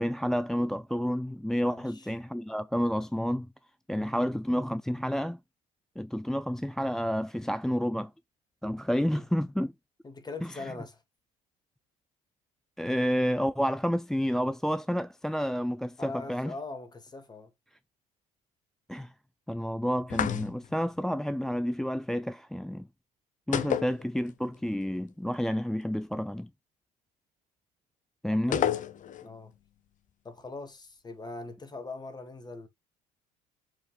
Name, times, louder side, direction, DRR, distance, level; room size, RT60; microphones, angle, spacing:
voice 1, 0.0-3.5 3.9-5.4 6.0-8.1 8.6-9.7 10.4-10.6 12.8-16.5 18.9-19.1 19.5-22.9 23.5-26.5 28.2-28.6, equal, ahead, 0.4 m, -30 dB
voice 2, 1.6-2.1 3.9-4.2 9.0-9.3 10.0-11.0 16.0-17.5 23.7-23.8 28.3-28.7 29.2-29.5 30.2-32.7, left 3 dB, 20° left, 2.4 m, -42 dB
sound 1, 20.1-20.8 23.5-24.6 24.8-24.9 28.5-29.3, left 9 dB, 45° left, 0.9 m, -30 dB
7.2 x 4.2 x 3.8 m
supercardioid pair, 90°, 18 cm